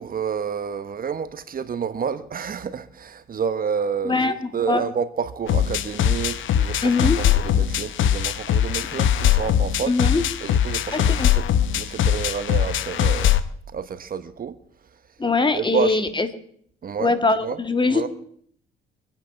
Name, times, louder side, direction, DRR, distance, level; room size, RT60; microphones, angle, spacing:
voice 1, 0.0-9.9 10.4-11.4 11.7-13.3 13.7-14.6 15.5-16.0 16.8-17.1 17.4-17.6 17.9-18.1, right 6 dB, 45° right, 1.1 m, -29 dB
sound 1, 5.5-13.5, left 10 dB, 75° left, 0.9 m, -21 dB
voice 2, 6.8-7.2 9.9-10.2 10.9-11.3 15.2-16.3 17.0-18.1, left 3 dB, 25° left, 1.7 m, -21 dB
24.5 x 9.1 x 5.8 m
cardioid pair, 90°, 20 cm